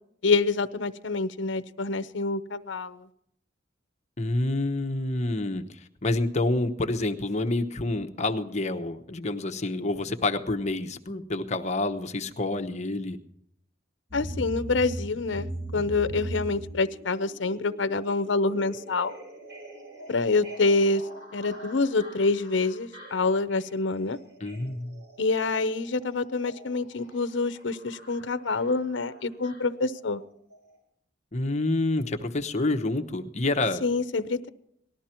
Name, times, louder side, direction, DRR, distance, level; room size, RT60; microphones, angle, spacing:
voice 1, 0.2-3.0 14.1-19.1 20.1-21.0 21.3-24.2 25.2-30.2 33.8-34.5, left 3 dB, 70° left, 13 dB, 0.7 m, -26 dB
voice 2, 4.2-5.6 6.0-13.2 24.4-25.0 31.3-33.8, left 2 dB, 40° left, 6 dB, 1.0 m, -28 dB
sound 1, 14.1-30.2 30.5-30.6, right 1 dB, 60° right, 7.5 m, -41 dB
19.0 x 13.0 x 4.4 m, 0.74 s
head